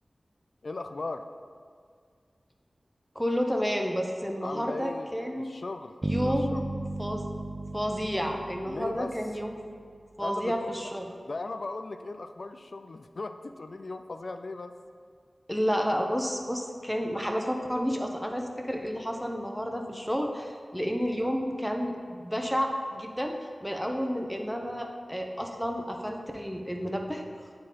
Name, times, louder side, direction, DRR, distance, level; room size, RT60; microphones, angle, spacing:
voice 1, 0.6-1.3 4.4-6.6 8.7-9.1 10.2-10.5 11.3-14.8, left 3 dB, 65° left, 8 dB, 0.3 m, -38 dB
voice 2, 3.1-5.5 6.0-6.6 7.0-7.3 7.7-9.5 10.2-11.1 15.5-27.2, equal, ahead, 2 dB, 0.7 m, -31 dB
sound 1, 6.0-10.0, right 2 dB, 30° right, 0.3 m, -35 dB
8.8 x 3.7 x 4.1 m, 2.1 s
cardioid pair, 45°, 0 cm